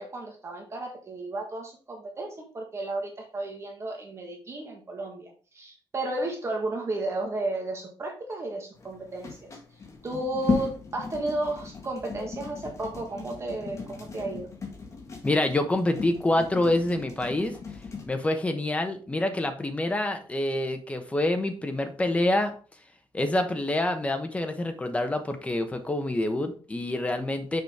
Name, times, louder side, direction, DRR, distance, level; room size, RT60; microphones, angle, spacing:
voice 1, 0.0-9.6 10.0-14.5, right 2 dB, 35° right, 1 dB, 1.6 m, -33 dB
sound 1, 8.7-18.1, left 4 dB, 35° left, 1.6 m, -36 dB
voice 2, 15.2-17.6 18.1-22.5 23.1-27.6, left 1 dB, 15° left, 6 dB, 1.1 m, -27 dB
6.7 x 5.0 x 3.6 m, 0.39 s
wide cardioid pair, 145°, 8 cm